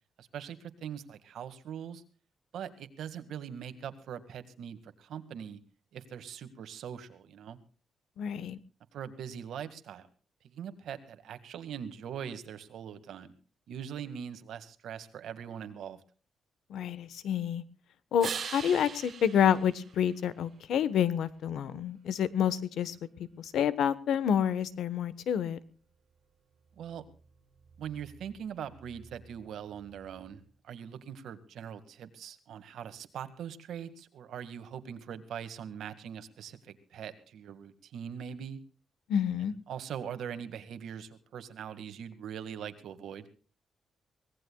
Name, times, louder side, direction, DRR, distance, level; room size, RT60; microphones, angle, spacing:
voice 1, 0.2-2.0 2.5-5.6 5.9-7.6 8.9-10.1 10.4-13.3 13.7-16.0 26.8-27.0 27.8-38.6 39.4-43.3, right 8 dB, 80° right, 10 dB, 2.0 m, -42 dB
voice 2, 8.2-8.6 16.7-17.6 18.1-22.9 23.4-25.6 39.1-39.5, left 9 dB, 85° left, 15 dB, 1.2 m, -28 dB
sound 1, 18.2-20.8 26.5-30.5, right 7 dB, 50° right, 1.2 m, -45 dB
24.5 x 18.0 x 2.3 m, 0.38 s
wide cardioid pair, 155°, 0 cm